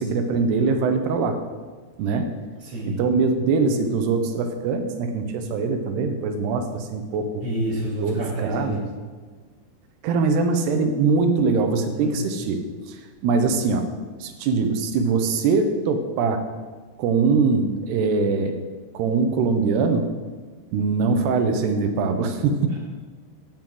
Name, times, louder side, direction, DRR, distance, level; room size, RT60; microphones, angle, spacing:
voice 1, 0.0-1.4 2.0-2.3 3.0-7.4 8.0-8.8 10.0-12.6 12.9-13.9 14.2-16.4 17.0-18.5 18.9-20.1 20.7-22.8, right 4 dB, 75° right, 6 dB, 3.0 m, -22 dB
voice 2, 2.6-2.9 7.4-8.8 11.9-12.1 13.3-13.5, right 1 dB, 35° right, -7 dB, 4.3 m, -28 dB
14.5 x 9.3 x 3.9 m, 1.4 s
omnidirectional pair, 4.9 m